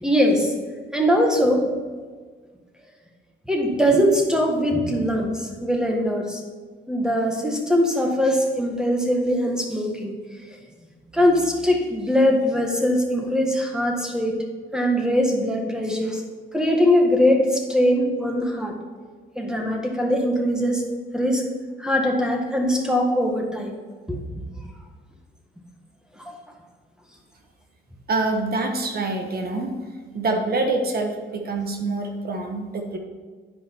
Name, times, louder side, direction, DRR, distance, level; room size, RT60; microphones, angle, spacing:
voice 1, 0.0-0.5 0.9-1.7 3.5-6.4 6.9-10.1 11.1-14.4 14.7-16.2 16.5-18.7 19.3-20.8 21.1-21.4 21.8-23.7 24.1-24.2 26.2-26.4, equal, 5° right, 1 dB, 1.6 m, -21 dB
voice 2, 28.1-29.7 30.1-33.0, right 2 dB, 50° right, 3 dB, 1.2 m, -25 dB
10.0 x 5.1 x 4.5 m, 1.5 s
cardioid pair, 90°, 20 cm